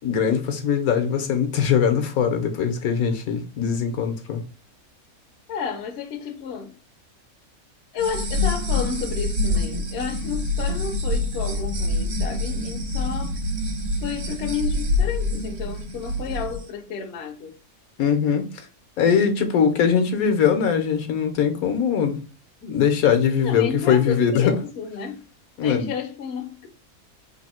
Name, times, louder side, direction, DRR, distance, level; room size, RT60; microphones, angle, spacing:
voice 1, 0.0-4.4 18.0-18.5 19.0-22.2 22.6-24.5 25.6-25.9, left 7 dB, 75° left, 1.2 m, -21 dB
voice 2, 5.5-6.7 7.9-13.4 14.0-17.6 23.4-25.2 25.6-26.7, left 6 dB, 55° left, 0.8 m, -31 dB
sound 1, 8.0-16.6, left 2 dB, 60° right, 1.3 m, -26 dB
3.5 x 2.7 x 4.2 m
omnidirectional pair, 1.6 m